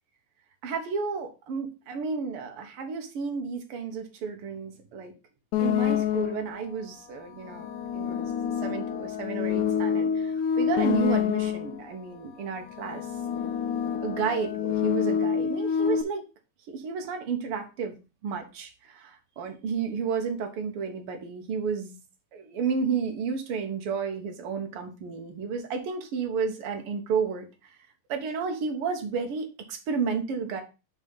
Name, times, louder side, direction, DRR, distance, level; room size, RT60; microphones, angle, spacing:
voice 1, 0.6-5.1 5.6-13.1 14.0-16.3 16.7-17.9 18.2-22.0 22.3-27.5 28.1-30.6, right 5 dB, 60° right, 4 dB, 1.8 m, -32 dB
sound 1, 5.5-6.6 7.4-11.9 12.6-16.0, left 8 dB, 80° left, 2.0 m, -27 dB
5.5 x 4.5 x 5.4 m, 0.30 s
omnidirectional pair, 3.5 m